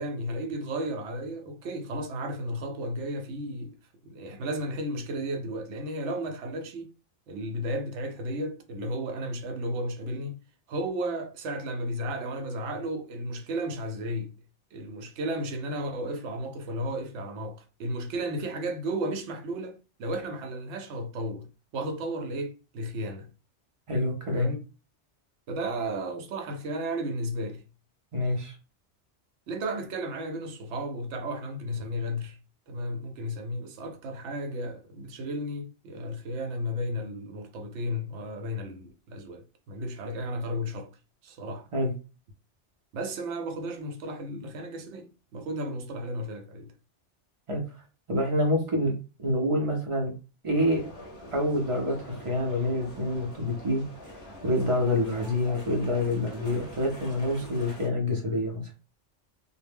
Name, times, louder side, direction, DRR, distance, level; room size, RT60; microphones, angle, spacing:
voice 1, 0.0-3.7 4.0-6.9 7.3-10.4 10.7-14.3 14.7-21.5 21.7-23.3 24.3-24.6 25.5-27.6 29.5-32.4 32.7-40.9 41.2-41.7 42.9-46.7, equal, 80° right, 0.9 m, -33 dB
voice 2, 23.9-24.5 28.1-28.5 41.7-41.9 47.5-47.6 48.1-48.9 49.2-50.1 50.4-50.8 51.3-53.8 54.4-58.6, left 1 dB, 40° right, 0.5 m, -27 dB
sound 1, 50.5-57.9, left 1 dB, 35° left, 0.6 m, -45 dB
2.1 x 2.0 x 3.4 m
omnidirectional pair, 1.2 m